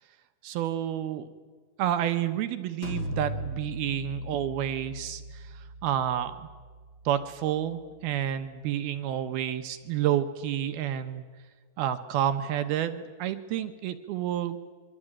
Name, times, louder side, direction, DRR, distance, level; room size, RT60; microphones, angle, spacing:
voice 1, 0.4-1.3 1.8-5.4 5.8-6.4 7.1-11.2 11.8-14.6, right 11 dB, 70° right, 9 dB, 2.8 m, -29 dB
sound 1, 2.8-8.5, equal, 30° left, 3.1 m, -39 dB
26.0 x 24.0 x 8.8 m, 1.5 s
omnidirectional pair, 4.9 m